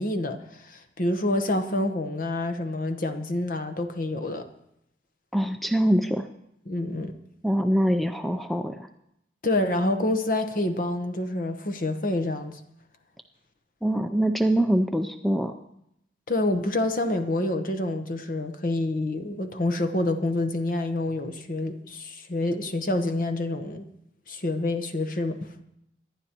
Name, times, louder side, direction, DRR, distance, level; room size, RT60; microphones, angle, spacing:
voice 1, 0.0-4.5 6.7-7.1 9.4-12.6 16.3-23.8 24.3-25.5, left 1 dB, 50° left, 8 dB, 1.0 m, -27 dB
voice 2, 5.3-6.3 7.4-8.9 13.8-15.6, equal, ahead, 7 dB, 0.4 m, -24 dB
25.0 x 11.0 x 3.0 m, 0.79 s
head